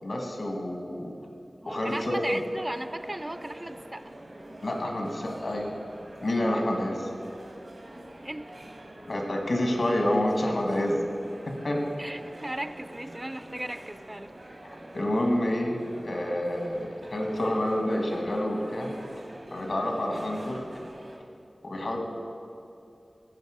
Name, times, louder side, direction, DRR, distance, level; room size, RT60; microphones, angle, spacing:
voice 1, 0.0-1.1 1.7-2.4 4.6-5.7 6.2-7.1 9.0-11.0 11.5-11.8 14.9-15.7 16.0-18.9 19.5-20.6 21.6-22.0, left 1 dB, 80° left, 2 dB, 1.3 m, -28 dB
voice 2, 1.6-4.2 8.2-8.6 12.0-14.3, right 1 dB, 25° right, 10 dB, 0.3 m, -36 dB
sound 1, 1.7-21.2, right 1 dB, 75° right, 1.3 m, -46 dB
13.5 x 5.3 x 4.9 m, 2.5 s
wide cardioid pair, 65°, 0 cm